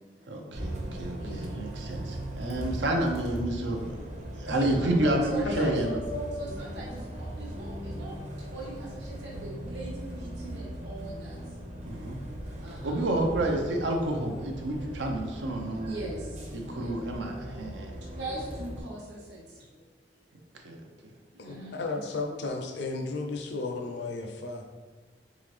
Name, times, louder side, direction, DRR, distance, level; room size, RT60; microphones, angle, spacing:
voice 1, 0.3-4.0 4.4-6.0 11.8-12.2 12.8-16.0 16.5-18.0 20.6-20.8, right 1 dB, 90° right, 2 dB, 0.7 m, -30 dB
Bus, 0.5-18.8, right 1 dB, 40° right, 0.7 m, -39 dB
voice 2, 1.2-2.2 4.6-4.9 5.2-8.2 8.5-11.4 12.6-13.0 15.8-16.9 18.2-19.8 21.3-21.8, right 1 dB, 75° right, -5 dB, 1.0 m, -40 dB
voice 3, 4.5-5.2 5.4-5.7 21.4-24.6, left 3 dB, 70° left, 2 dB, 0.6 m, -34 dB
3.9 x 3.8 x 3.2 m, 1.3 s
head